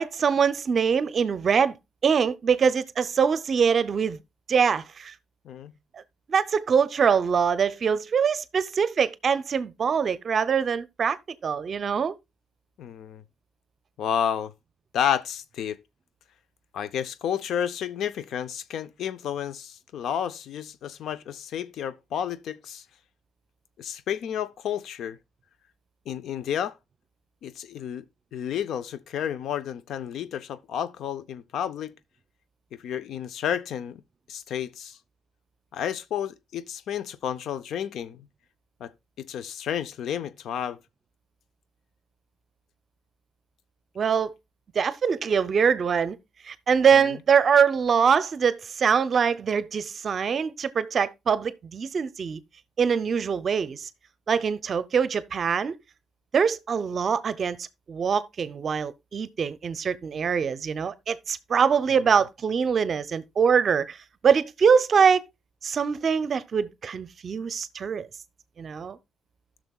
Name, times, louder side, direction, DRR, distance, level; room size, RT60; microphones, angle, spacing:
voice 1, 0.0-1.7 2.0-4.2 4.5-5.1 5.9-6.0 6.3-11.2 11.4-12.1 44.0-44.3 44.7-46.2 46.4-52.4 52.8-53.9 54.3-55.8 56.3-64.0 64.2-65.2 65.6-68.1 68.6-69.0, right 6 dB, 50° right, 0.6 m, -23 dB
voice 2, 5.4-5.8 12.8-13.2 14.0-14.5 14.9-15.8 16.7-22.8 23.8-25.2 26.1-26.8 27.4-28.0 28.3-31.9 32.7-34.0 34.3-35.0 35.7-38.3 38.8-38.9 39.2-40.8 47.0-47.2, left 9 dB, 75° left, 0.5 m, -31 dB
14.5 x 6.1 x 2.3 m
cardioid pair, 90°, 0 cm